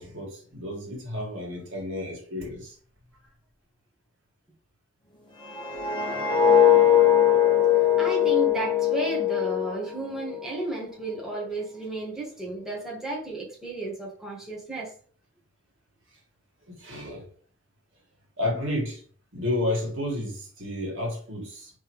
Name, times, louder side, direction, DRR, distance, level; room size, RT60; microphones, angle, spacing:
voice 1, 0.0-2.8 16.7-17.3 18.4-19.0 19.3-21.7, left 1 dB, 75° right, 1.8 m, -31 dB
sound 1, 5.4-10.5 10.8-11.1, left 9 dB, 25° left, 1.1 m, -21 dB
voice 2, 8.0-14.9, right 2 dB, 5° right, 1.2 m, -33 dB
4.4 x 3.3 x 3.1 m
head